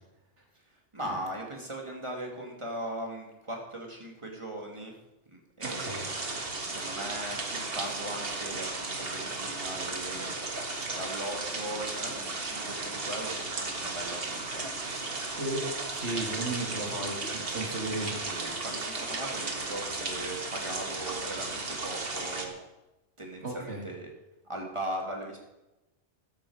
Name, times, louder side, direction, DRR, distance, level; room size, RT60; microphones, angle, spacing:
voice 1, 0.9-5.0 5.3-6.2 6.7-10.3 10.9-14.6 17.9-22.6 23.2-24.1 24.4-25.4, right 1 dB, 25° right, 1 dB, 2.7 m, -39 dB
sound 1, 5.6-22.5, right 3 dB, 55° right, 1.9 m, -35 dB
voice 2, 5.6-6.1 15.4-18.5 23.4-23.9, right 2 dB, 75° right, 1 dB, 2.8 m, -35 dB
13.5 x 12.5 x 5.0 m, 0.99 s
omnidirectional pair, 1.2 m